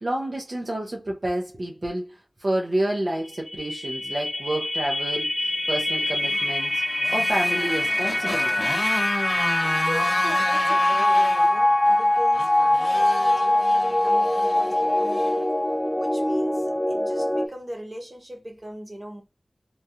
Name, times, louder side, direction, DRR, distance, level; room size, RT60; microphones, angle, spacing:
voice 1, 0.0-8.8, right 1 dB, 55° right, 0.6 m, -29 dB
sound 1, 3.2-17.5, left 1 dB, 25° left, 0.4 m, -23 dB
Motorcycle, 6.0-15.4, left 2 dB, 70° left, 0.8 m, -33 dB
voice 2, 9.6-15.5 16.0-19.2, equal, 30° right, 1.1 m, -39 dB
3.1 x 2.3 x 2.7 m
wide cardioid pair, 55°, 0 cm